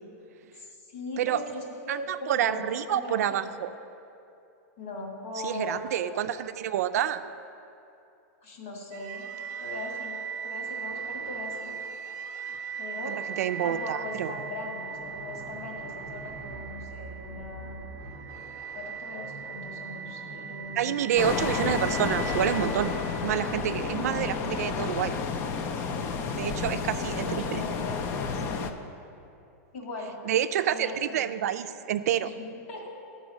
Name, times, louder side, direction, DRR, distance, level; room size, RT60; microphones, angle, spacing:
voice 1, 0.6-2.6 2.9-3.5 4.8-6.1 8.4-9.3 9.6-10.2 10.4-11.7 12.8-13.2 13.6-17.8 18.7-21.3 26.7-28.6 29.7-30.2 30.7-31.3 32.2-32.9, left 2 dB, 60° left, -1 dB, 2.0 m, -39 dB
voice 2, 1.9-3.7 5.4-7.3 13.1-14.3 20.8-22.9 23.2-25.1 26.4-27.6 30.2-32.3, right 10 dB, 75° right, 11 dB, 0.4 m, -28 dB
sound 1, 8.9-24.0, right 6 dB, 30° right, 0.6 m, -39 dB
sound 2, 21.2-28.7, left 5 dB, 25° left, 0.4 m, -31 dB
11.5 x 4.0 x 6.1 m, 2.7 s
supercardioid pair, 165°, 8 cm